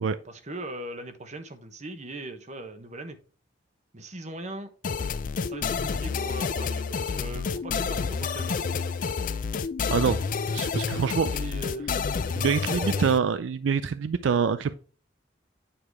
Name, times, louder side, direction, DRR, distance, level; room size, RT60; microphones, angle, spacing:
voice 1, 0.2-3.2 3.9-4.7 5.5-8.9 11.3-11.9 12.7-13.1, right 1 dB, 40° right, 8 dB, 1.0 m, -40 dB
sound 1, 4.8-13.2, left 5 dB, 45° left, 0.4 m, -29 dB
voice 2, 10.5-11.3 12.4-14.8, right 6 dB, 80° right, 14 dB, 0.4 m, -25 dB
8.7 x 4.8 x 3.5 m, 0.39 s
head